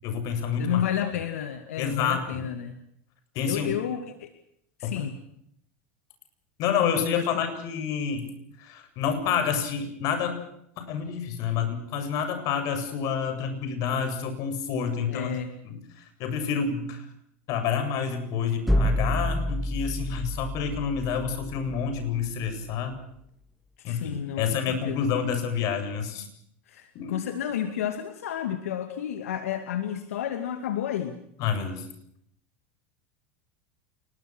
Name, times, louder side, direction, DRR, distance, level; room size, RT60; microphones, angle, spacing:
voice 1, 0.0-0.8 1.8-2.5 3.3-3.7 4.8-5.1 6.6-8.3 8.6-10.4 10.8-15.3 15.6-15.8 16.2-17.1 17.5-23.0 23.8-26.3 26.9-27.2 31.4-31.9, left 7 dB, 50° left, 8 dB, 7.9 m, -28 dB
voice 2, 0.5-2.8 3.4-4.3 4.8-5.2 7.2-7.5 15.1-15.6 21.1-21.2 23.8-25.0 26.7-31.2, left 10 dB, 85° left, 8 dB, 2.5 m, -31 dB
sound 1, 18.7-22.5, equal, ahead, 2.1 m, -28 dB
28.0 x 22.0 x 6.3 m, 0.72 s
supercardioid pair, 120°, 7 cm